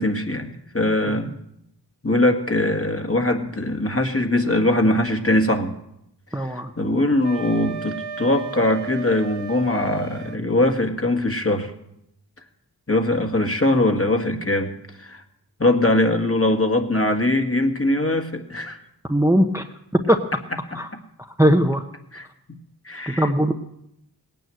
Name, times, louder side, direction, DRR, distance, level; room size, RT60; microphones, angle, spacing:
voice 1, 0.0-1.3 2.0-5.8 6.3-11.7 12.9-14.7 15.0-15.2 15.6-18.8 22.1-22.6 22.9-23.3, left 1 dB, 35° left, 4 dB, 1.8 m, -21 dB
voice 2, 6.3-6.7 19.1-19.7 20.1-20.2 20.7-20.9 21.2-21.8 23.1-23.5, equal, 5° right, 5 dB, 0.9 m, -19 dB
Wind instrument woodwind instrument, 7.2-10.4, right 5 dB, 85° right, 0.7 m, -35 dB
18.0 x 9.4 x 7.7 m, 0.80 s
wide cardioid pair, 50°, 42 cm